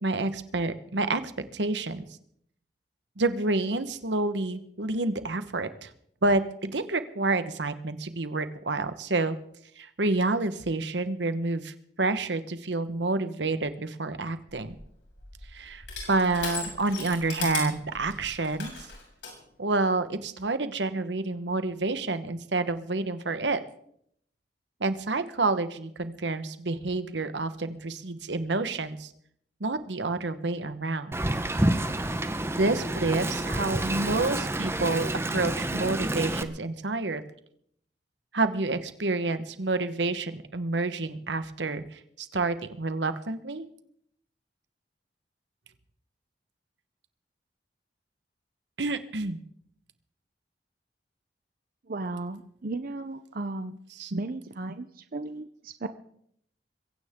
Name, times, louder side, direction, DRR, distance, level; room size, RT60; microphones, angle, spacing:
voice 1, 0.0-1.2 1.5-2.0 3.2-5.9 6.2-9.4 9.8-14.8 15.5-18.9 19.6-23.6 24.8-29.1 29.6-31.1 32.6-37.2 38.3-43.7 48.8-49.4 54.0-54.1, right 3 dB, 85° right, 11 dB, 1.3 m, -29 dB
Crushing, 14.5-19.4, left 5 dB, 85° left, 7.1 m, -38 dB
Wind, 31.1-36.4, right 1 dB, 15° right, 1.0 m, -28 dB
voice 2, 51.9-53.8 54.1-55.9, right 2 dB, 55° right, 10 dB, 0.7 m, -35 dB
22.5 x 16.5 x 3.7 m, 0.69 s
head